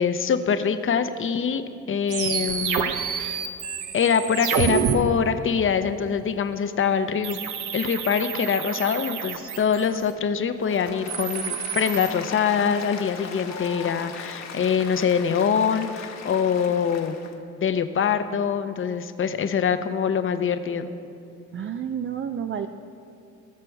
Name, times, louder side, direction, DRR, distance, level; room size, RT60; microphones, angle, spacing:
voice 1, 0.0-1.6 1.9-3.4 3.9-7.4 7.7-17.2 17.6-20.9, left 7 dB, 45° left, 10 dB, 0.8 m, -24 dB
sound 1, 2.1-4.9 7.2-10.0 10.9-12.1, right 8 dB, 75° right, 0.9 m, -28 dB
Applause, 10.6-17.3, left 5 dB, 60° left, 1.2 m, -38 dB
voice 2, 21.5-22.7, right 8 dB, 40° right, 7 dB, 0.5 m, -30 dB
19.0 x 6.8 x 4.7 m, 2.5 s
cardioid pair, 90°, 30 cm